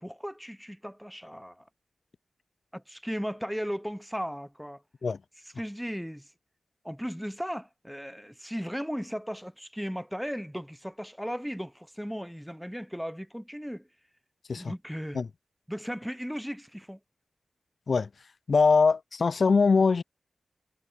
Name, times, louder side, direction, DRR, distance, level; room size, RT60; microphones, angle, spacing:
voice 1, 0.0-1.7 2.7-4.8 5.6-6.3 6.8-13.9 14.6-15.2 15.7-17.0, equal, ahead, 1.0 m, -36 dB
voice 2, 18.5-20.0, left 4 dB, 60° left, 0.3 m, -22 dB
wide cardioid pair, 125°, 0 cm